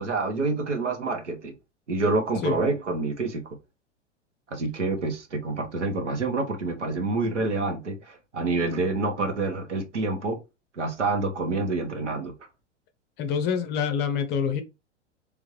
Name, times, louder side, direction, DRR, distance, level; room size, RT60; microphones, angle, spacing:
voice 1, 0.0-1.5 1.9-3.4 4.5-10.4 10.7-12.3, right 3 dB, 75° right, 1.3 m, -27 dB
voice 2, 13.2-14.6, left 7 dB, 30° left, 0.6 m, -26 dB
3.6 x 3.5 x 3.1 m
figure-of-eight pair, 95°, 36 cm